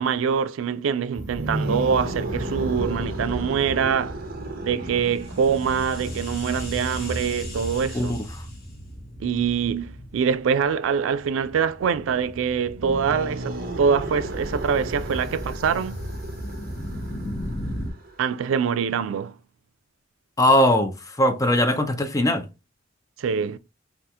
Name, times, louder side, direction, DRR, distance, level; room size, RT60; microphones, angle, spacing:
voice 1, 0.0-4.2 4.6-8.2 9.2-16.0 18.2-19.3 23.2-23.6, right 6 dB, 85° right, 0.3 m, -24 dB
sound 1, 1.1-17.9, equal, 55° left, 0.9 m, -35 dB
sound 2, 1.2-6.4 12.6-18.3, right 2 dB, 50° right, 0.7 m, -35 dB
voice 2, 20.4-22.4, left 1 dB, 15° left, 0.5 m, -20 dB
2.8 x 2.4 x 3.4 m
head